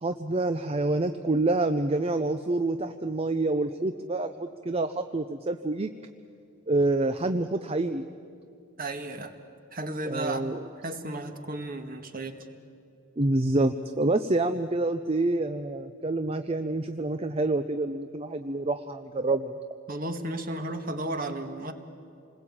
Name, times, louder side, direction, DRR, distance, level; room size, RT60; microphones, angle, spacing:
voice 1, 0.0-5.9 6.7-8.1 10.0-10.6 13.2-19.5, right 2 dB, 30° right, 9 dB, 0.6 m, -27 dB
voice 2, 8.8-9.3 9.7-10.4 10.8-12.4 19.9-21.7, right 2 dB, 45° right, 7 dB, 1.8 m, -34 dB
28.0 x 20.5 x 8.7 m, 2.5 s
head